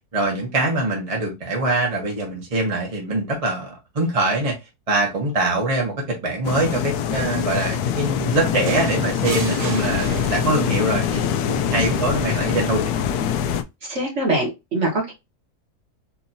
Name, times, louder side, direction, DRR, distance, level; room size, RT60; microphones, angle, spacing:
voice 1, 0.1-4.6 4.9-12.9, right 2 dB, 25° right, 1.2 m, -23 dB
sound 1, 6.4-13.6, left 8 dB, 75° left, 1.1 m, -24 dB
sound 2, 8.7-10.8 12.2-12.4, right 5 dB, 90° right, 1.5 m, -32 dB
voice 2, 13.9-15.1, right 2 dB, 50° right, 1.8 m, -23 dB
4.5 x 2.9 x 2.7 m
omnidirectional pair, 1.7 m